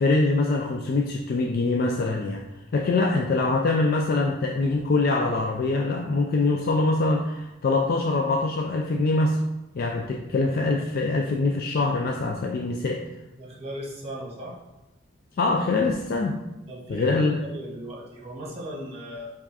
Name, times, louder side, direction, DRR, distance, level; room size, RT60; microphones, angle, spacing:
voice 1, 0.0-2.4 2.7-9.4 9.8-13.0 15.4-16.4 16.9-17.4, left 3 dB, 50° left, 1 dB, 0.3 m, -24 dB
voice 2, 13.3-14.6 16.7-19.3, equal, 30° right, -3 dB, 1.1 m, -37 dB
4.6 x 2.4 x 4.0 m, 1.0 s
head